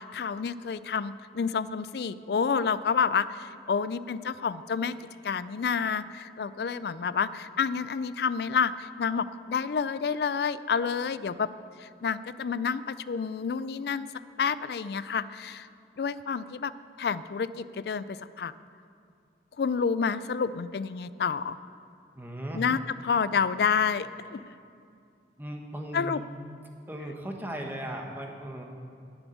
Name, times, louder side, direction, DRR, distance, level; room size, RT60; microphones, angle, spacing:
voice 1, 0.0-4.9 5.2-11.5 11.8-14.1 14.4-15.7 16.0-16.7 17.0-18.5 19.6-21.6 22.5-22.8 23.0-24.4 25.9-26.2, left 6 dB, 60° left, 16 dB, 0.4 m, -29 dB
voice 2, 22.1-22.6 25.4-26.2 26.9-28.6, right 1 dB, 10° right, 1 dB, 1.1 m, -37 dB
11.0 x 7.2 x 9.3 m, 2.4 s
head